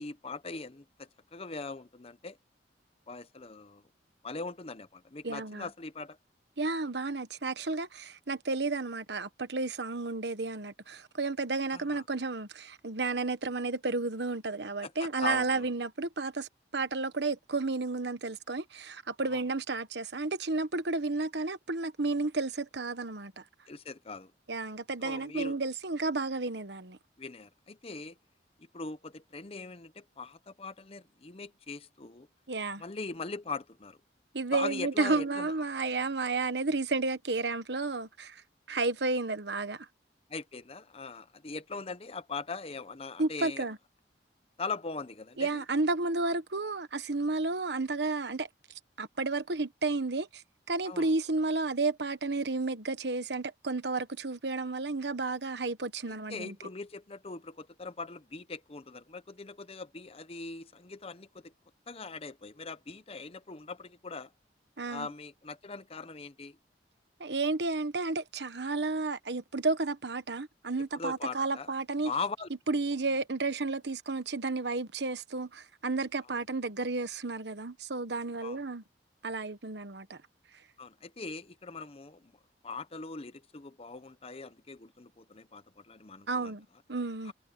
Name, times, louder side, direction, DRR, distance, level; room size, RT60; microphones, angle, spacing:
voice 1, 0.0-2.4 3.1-3.8 4.2-6.2 11.7-12.0 14.8-15.6 19.3-19.4 23.7-24.3 25.0-25.6 27.2-28.2 28.7-32.3 32.8-34.0 34.5-35.5 40.3-43.6 44.6-45.6 50.9-51.1 56.1-61.5 61.9-64.3 64.9-66.6 70.9-71.7 72.0-72.5 78.4-78.6 80.8-82.3 82.6-86.5 87.3-87.4, left 4 dB, 35° left, 0.8 m, -41 dB
voice 2, 5.2-5.7 6.6-23.4 24.5-27.0 32.5-32.8 34.3-38.4 38.7-39.9 43.2-43.8 45.4-48.5 49.0-50.4 50.7-56.6 64.8-65.1 67.2-72.1 72.7-78.8 79.2-80.2 86.3-87.3, right 3 dB, 70° right, 1.2 m, -32 dB
head